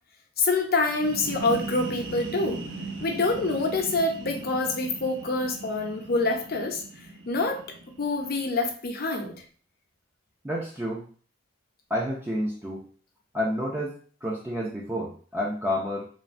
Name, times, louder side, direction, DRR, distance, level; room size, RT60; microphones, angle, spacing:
voice 1, 0.4-2.6 3.0-6.8 7.3-7.6 8.0-9.4, left 3 dB, 50° left, 3 dB, 0.6 m, -26 dB
sound 1, 0.9-8.5, right 2 dB, 70° right, 0.5 m, -39 dB
voice 2, 10.4-11.1 11.9-12.9 13.3-16.1, equal, 10° right, -4 dB, 0.4 m, -30 dB
3.1 x 2.1 x 2.5 m, 0.43 s
head